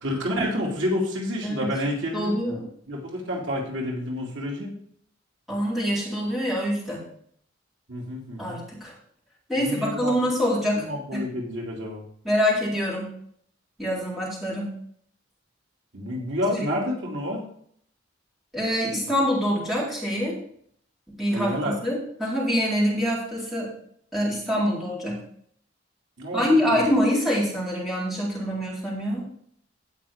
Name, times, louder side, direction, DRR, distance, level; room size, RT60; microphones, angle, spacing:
voice 1, 0.0-2.3 2.9-4.7 7.9-8.6 9.5-10.1 10.8-12.0 15.9-17.4 21.3-21.7 26.2-26.4 26.7-26.8, equal, 80° right, -2 dB, 2.6 m, -29 dB
voice 2, 2.1-2.7 5.5-7.0 8.4-8.9 9.5-11.2 12.2-13.1 13.8-14.8 16.6-16.7 18.5-20.4 21.1-21.5 21.8-23.7 24.1-25.2 26.3-29.2, equal, ahead, -7 dB, 4.2 m, -25 dB
17.0 x 5.8 x 3.6 m, 0.63 s
head